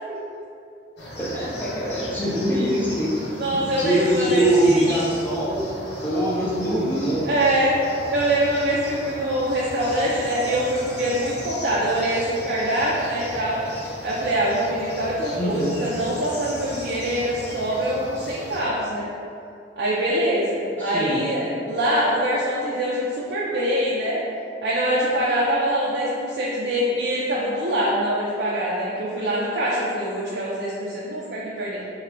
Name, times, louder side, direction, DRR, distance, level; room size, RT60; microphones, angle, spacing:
sound 1, 1.0-18.6, left 1 dB, 65° left, 0.7 m, -36 dB
voice 1, 1.2-5.7 6.0-7.2 15.3-15.7 20.8-21.2, right 1 dB, 10° left, -8 dB, 0.5 m, -23 dB
voice 2, 3.4-5.0 7.2-7.8 8.1-13.6 14.0-19.1 19.8-24.2 24.6-31.8, right 1 dB, 65° right, -6 dB, 0.4 m, -24 dB
3.7 x 2.2 x 3.3 m, 2.5 s
head